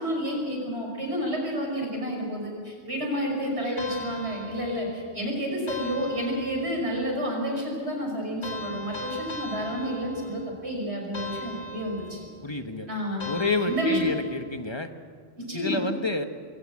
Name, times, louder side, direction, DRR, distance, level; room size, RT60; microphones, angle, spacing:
voice 1, 0.0-12.2 12.9-13.3 13.6-14.1 15.4-15.8, equal, 80° right, 0 dB, 6.1 m, -30 dB
sound 1, 3.8-5.1 5.7-7.0 8.4-10.6 11.1-12.4 13.2-14.5, left 2 dB, 85° left, 2.5 m, -39 dB
voice 2, 12.4-12.9 13.2-14.9 15.5-16.2, left 3 dB, 25° left, 7 dB, 1.2 m, -29 dB
22.0 x 18.0 x 7.6 m, 2.1 s
omnidirectional pair, 1.1 m